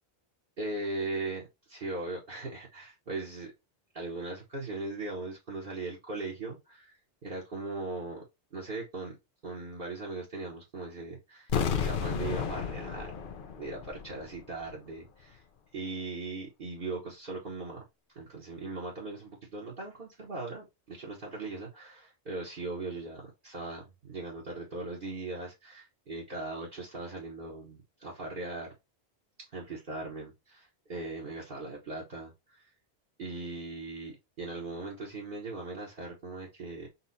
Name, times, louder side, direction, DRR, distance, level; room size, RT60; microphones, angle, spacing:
voice 1, 0.6-3.5 3.9-7.0 7.2-8.2 8.5-9.1 9.4-11.5 11.8-13.3 13.6-15.4 15.7-17.8 18.1-28.7 29.5-32.7 33.2-36.9, right 2 dB, 50° right, 1.3 m, -39 dB
sound 1, 11.5-14.4 14.6-14.7, left 7 dB, 60° left, 0.7 m, -32 dB
4.2 x 2.3 x 4.0 m
omnidirectional pair, 1.1 m